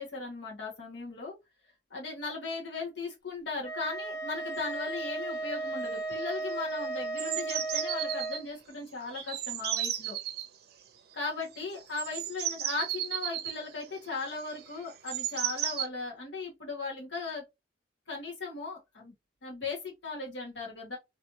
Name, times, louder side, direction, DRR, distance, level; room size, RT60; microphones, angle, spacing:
voice 1, 0.0-1.3 1.9-10.2 11.1-17.4 18.1-19.1 19.4-21.0, left 3 dB, 80° left, 1.5 m, -37 dB
Wind instrument woodwind instrument, 3.6-8.4, right 2 dB, 20° left, 0.9 m, -35 dB
sound 1, 4.6-4.7 4.8-5.2 5.5-5.9 6.1-8.4 9.1-10.5 11.5-15.9, right 11 dB, 60° right, 0.6 m, -35 dB
3.2 x 3.0 x 2.6 m
head